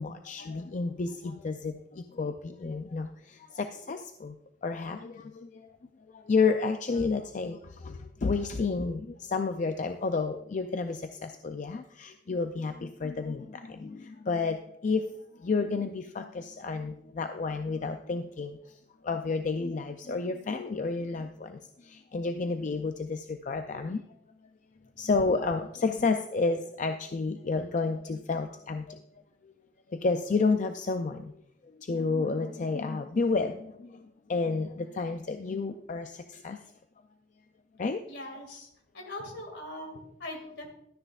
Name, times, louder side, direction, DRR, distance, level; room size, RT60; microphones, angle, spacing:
voice 1, 0.0-4.4 4.6-5.6 6.1-15.1 15.4-18.6 19.0-24.0 25.0-29.0 29.9-31.4 31.8-36.6 37.8-38.0 40.4-40.5, left 4 dB, 45° left, 7 dB, 0.4 m, -31 dB
voice 2, 38.1-38.7 38.9-40.7, left 1 dB, 70° left, 3 dB, 2.3 m, -41 dB
12.5 x 9.8 x 2.4 m, 0.78 s
head